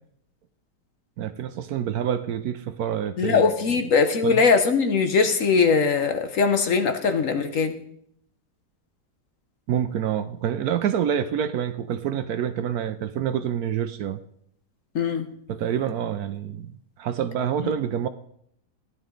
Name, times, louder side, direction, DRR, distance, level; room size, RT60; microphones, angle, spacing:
voice 1, 1.2-3.9 4.2-4.4 9.7-14.2 15.5-18.1, right 9 dB, 70° right, 11 dB, 1.0 m, -27 dB
voice 2, 3.2-7.7 14.9-15.3, left 5 dB, 55° left, 8 dB, 1.1 m, -21 dB
15.5 x 11.0 x 3.8 m, 0.70 s
omnidirectional pair, 1.9 m